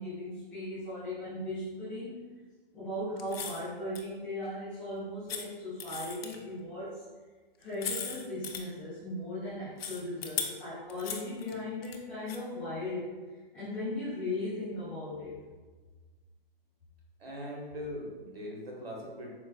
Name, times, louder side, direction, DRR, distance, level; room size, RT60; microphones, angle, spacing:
voice 1, 0.0-2.2 2.7-7.0 7.6-13.1 13.5-15.3, left 1 dB, 5° left, -15 dB, 0.5 m, -37 dB
sound 1, 3.2-3.7 3.9-4.0 5.3-5.4 5.8-6.4 7.6-8.6 9.8-10.5 10.9-12.0 12.3-12.4, left 7 dB, 80° left, 0.5 m, -37 dB
voice 2, 17.2-19.3, equal, 85° right, -2 dB, 1.1 m, -40 dB
4.3 x 2.2 x 2.3 m, 1.4 s
hypercardioid pair, 165°, 29 cm